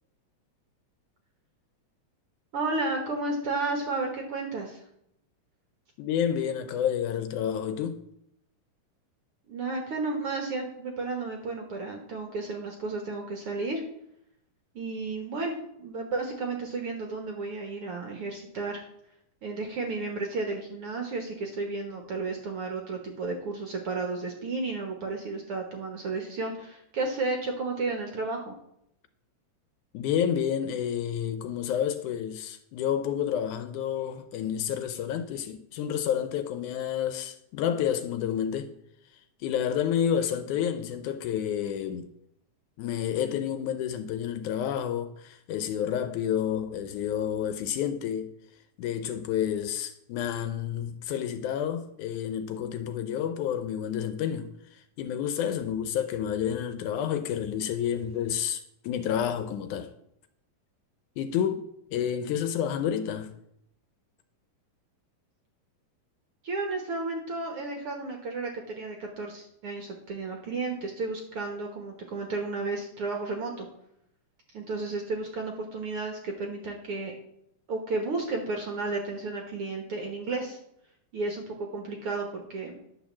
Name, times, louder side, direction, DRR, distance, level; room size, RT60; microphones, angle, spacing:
voice 1, 2.5-4.8 9.5-13.8 14.8-18.9 19.4-28.5 66.4-73.7 74.5-77.1 77.7-80.6 81.1-82.8, right 3 dB, 55° right, 1.7 m, -33 dB
voice 2, 6.0-8.0 29.9-38.8 39.4-42.1 42.8-48.3 48.8-59.9 61.2-63.3, left 9 dB, 75° left, 2.0 m, -30 dB
10.5 x 5.3 x 7.2 m
omnidirectional pair, 3.8 m